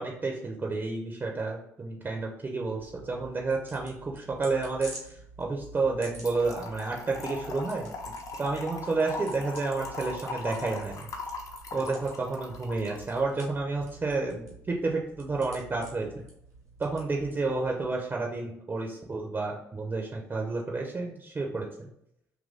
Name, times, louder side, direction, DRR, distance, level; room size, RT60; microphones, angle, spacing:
voice 1, 0.0-7.9 8.4-11.1 11.7-16.1 16.8-21.9, right 3 dB, 25° right, 1 dB, 0.6 m, -30 dB
sound 1, 2.8-18.0, right 2 dB, 80° right, 1.0 m, -49 dB
Trickle dribble / Fill (with liquid), 6.2-13.3, left 3 dB, 45° left, 0.7 m, -39 dB
2.9 x 2.6 x 3.6 m, 0.76 s
figure-of-eight pair, 50°, 8 cm